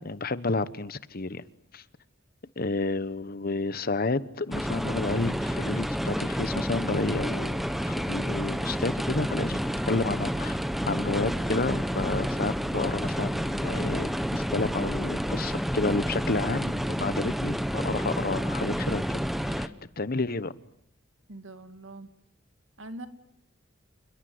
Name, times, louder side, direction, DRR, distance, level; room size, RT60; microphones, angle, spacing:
voice 1, 0.0-1.4 1.7-1.8 2.6-10.6 10.9-20.5, left 3 dB, 50° left, 1.2 m, -30 dB
sound 1, 4.5-19.7, equal, ahead, 1.0 m, -30 dB
voice 2, 21.3-22.1 22.8-23.1, right 1 dB, 85° right, 2.4 m, -42 dB
28.5 x 22.0 x 9.5 m
head